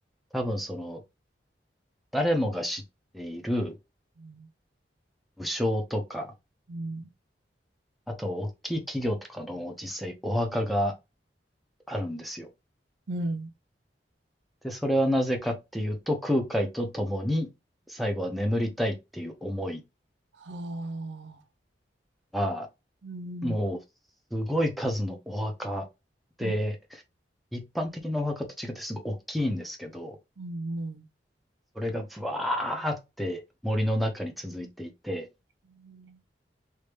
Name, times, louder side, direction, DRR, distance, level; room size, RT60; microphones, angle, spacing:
voice 1, 0.3-1.0 2.1-2.8 3.1-3.7 5.4-6.3 8.2-10.9 11.9-12.5 14.6-17.5 17.9-19.8 22.3-22.7 23.4-23.8 24.3-25.9 26.4-26.8 27.5-30.2 31.8-35.3, equal, ahead, 0.7 m, -29 dB
voice 2, 4.2-4.5 6.7-7.1 13.1-13.5 20.4-21.4 23.0-23.5 26.4-26.5 30.4-31.0 35.7-36.2, right 1 dB, 85° right, 0.6 m, -36 dB
3.2 x 2.6 x 3.4 m
head